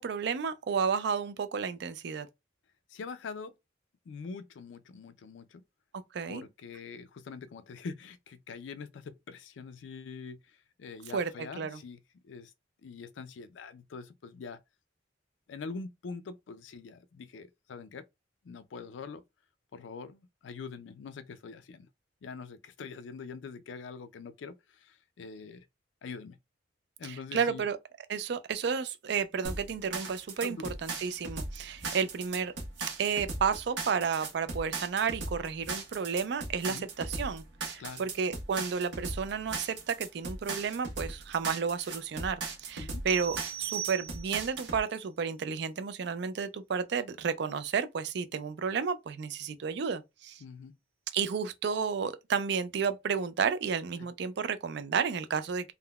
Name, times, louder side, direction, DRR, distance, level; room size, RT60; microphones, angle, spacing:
voice 1, 0.0-2.3 6.1-6.4 11.1-11.3 11.6-11.8 27.0-27.8 28.1-32.5 33.0-50.4 51.1-55.7, right 6 dB, 60° right, 0.4 m, -32 dB
voice 2, 2.9-3.5 4.1-5.6 6.3-12.5 12.8-14.6 15.5-18.0 18.4-19.2 19.7-21.9 22.2-25.7 26.0-26.4 27.0-27.7 30.4-30.7 36.7-36.9 37.8-38.1 42.8-43.0 50.4-50.8, left 5 dB, 75° left, 0.4 m, -44 dB
sound 1, 29.4-44.8, right 3 dB, 80° right, 0.9 m, -38 dB
sound 2, 43.1-44.6, right 10 dB, 15° right, 0.5 m, -39 dB
3.5 x 2.1 x 2.3 m
head